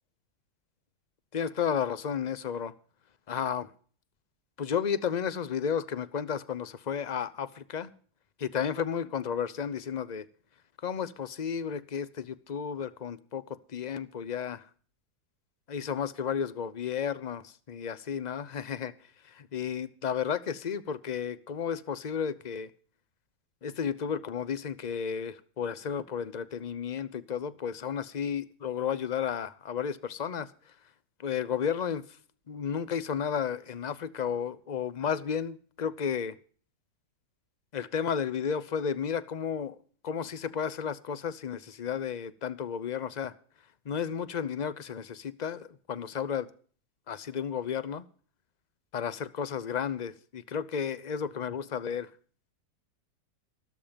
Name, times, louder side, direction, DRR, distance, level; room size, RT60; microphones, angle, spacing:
voice 1, 1.3-2.7 3.3-3.7 4.6-7.9 8.4-10.3 10.8-14.6 15.7-18.9 19.3-22.7 23.6-30.5 31.2-32.1 32.5-36.4 37.7-39.8 40.0-43.3 43.9-46.5 47.1-48.0 48.9-52.1, left 7 dB, 45° left, 0.5 m, -33 dB
14.5 x 13.0 x 5.2 m
omnidirectional pair, 1.8 m